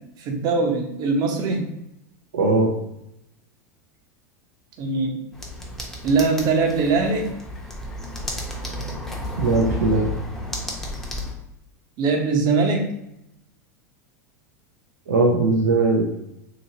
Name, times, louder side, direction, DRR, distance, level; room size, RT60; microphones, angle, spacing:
voice 1, 0.2-1.7 4.8-5.2 6.0-7.3 12.0-12.9, right 4 dB, 45° right, 3 dB, 0.8 m, -21 dB
voice 2, 2.3-2.7 9.4-10.1 15.1-16.1, right 3 dB, 90° right, -2 dB, 0.5 m, -19 dB
sound 1, 5.3-11.3, left 1 dB, 5° left, 0.8 m, -32 dB
2.9 x 2.7 x 2.8 m, 0.83 s
hypercardioid pair, 105°, 9 cm